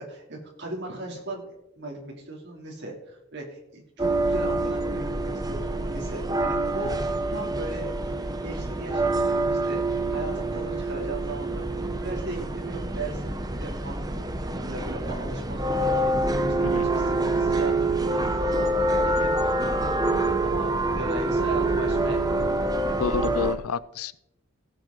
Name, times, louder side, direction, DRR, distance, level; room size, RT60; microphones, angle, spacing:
voice 1, 0.0-13.3 13.6-22.4 22.8-23.2, right 2 dB, 50° right, -1 dB, 3.1 m, -38 dB
sound 1, 4.0-23.6, right 2 dB, 20° right, 0.8 m, -26 dB
voice 2, 23.0-24.2, left 6 dB, 90° left, 18 dB, 0.5 m, -29 dB
17.0 x 8.2 x 3.9 m, 0.83 s
head